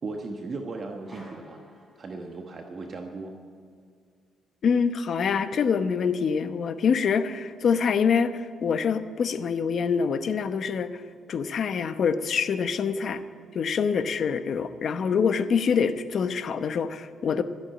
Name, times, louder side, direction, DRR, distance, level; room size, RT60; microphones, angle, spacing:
voice 1, 0.0-1.6 2.0-3.4, right 3 dB, 45° right, 3 dB, 1.2 m, -36 dB
sound 1, 1.0-2.8, left 1 dB, 5° right, 3.8 m, -51 dB
voice 2, 4.6-11.0 11.3-13.2 13.5-17.4, left 6 dB, 55° left, 11 dB, 0.8 m, -25 dB
13.5 x 8.2 x 9.0 m, 2.2 s
cardioid pair, 90°, 0 cm